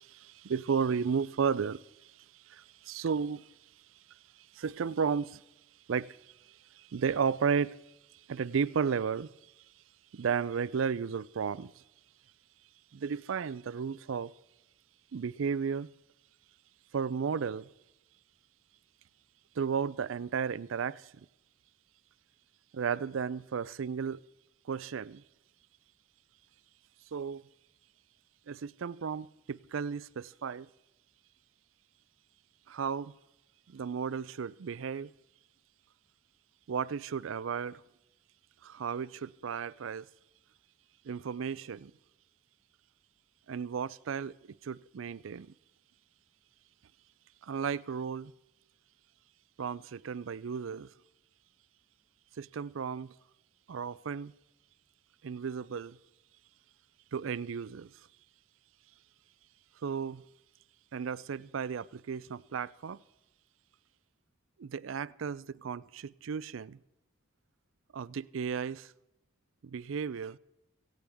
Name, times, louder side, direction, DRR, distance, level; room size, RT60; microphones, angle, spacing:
voice 1, 0.0-3.5 4.1-5.4 5.9-7.8 8.3-9.3 10.1-11.8 12.9-14.3 15.1-15.9 16.9-17.7 19.6-21.3 22.7-24.2 24.7-25.2 27.1-27.4 28.5-30.7 32.7-33.1 33.7-35.1 36.7-37.8 38.6-40.1 41.0-41.9 43.5-45.5 47.4-48.3 49.6-50.9 52.4-53.1 53.7-54.3 55.2-56.0 57.1-57.9 59.8-60.2 60.9-63.0 64.6-66.8 67.9-68.9 69.6-70.4, right 6 dB, 90° right, 0.4 m, -34 dB
17.5 x 16.5 x 3.5 m
head